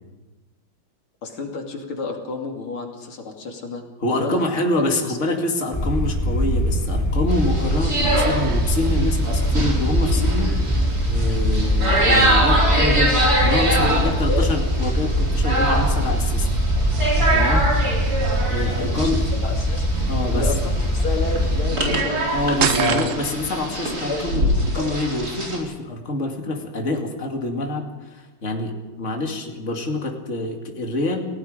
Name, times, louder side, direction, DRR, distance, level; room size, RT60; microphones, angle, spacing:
voice 1, 1.2-3.8 4.1-4.5 5.1-5.2 12.1-12.5 13.7-14.5 18.8-19.1 19.4-19.8 20.3-22.9 24.0-25.0, left 3 dB, 80° left, 1 dB, 3.5 m, -31 dB
voice 2, 4.0-13.2 13.4-16.5 17.3-17.6 18.5-19.2 20.1-20.5 22.3-31.3, left 2 dB, 35° left, 1 dB, 2.7 m, -26 dB
sound 1, 5.7-21.7, equal, 5° left, 5.9 m, -22 dB
sound 2, 7.3-25.6, right 1 dB, 45° right, 4.9 m, -24 dB
sound 3, 22.6-23.5, right 8 dB, 60° right, 0.8 m, -23 dB
30.0 x 17.5 x 5.1 m, 1.2 s
omnidirectional pair, 2.3 m